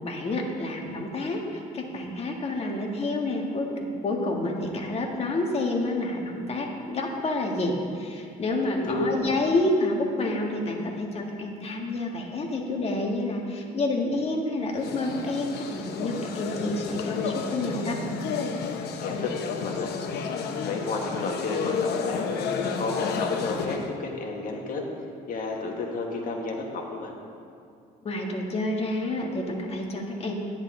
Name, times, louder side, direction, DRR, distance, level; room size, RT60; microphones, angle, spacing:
voice 1, 0.0-18.0 28.0-30.4, left 2 dB, 35° left, 1 dB, 1.6 m, -29 dB
voice 2, 8.7-9.3 19.0-19.9 20.6-22.2 22.8-24.9 25.3-27.1, left 3 dB, 55° left, 0 dB, 1.7 m, -31 dB
sound 1, 14.7-23.9, left 5 dB, 75° left, 0.9 m, -31 dB
10.5 x 10.5 x 3.8 m, 2.5 s
cardioid pair, 110°, 17 cm